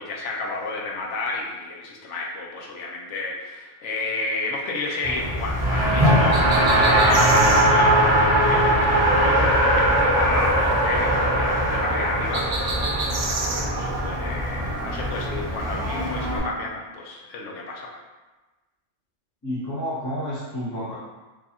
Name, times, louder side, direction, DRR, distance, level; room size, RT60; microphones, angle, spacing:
voice 1, 0.0-6.4 6.7-12.7 13.0-17.9, left 3 dB, 75° left, -1 dB, 1.0 m, -31 dB
Race car auto racing, 5.0-16.4, right 1 dB, 25° right, 0.7 m, -20 dB
sound 1, 6.3-7.7 12.3-13.7, right 3 dB, 75° right, 1.0 m, -29 dB
voice 2, 19.4-21.0, equal, 20° left, -9 dB, 0.5 m, -30 dB
4.6 x 2.4 x 2.7 m, 1.2 s
omnidirectional pair, 1.2 m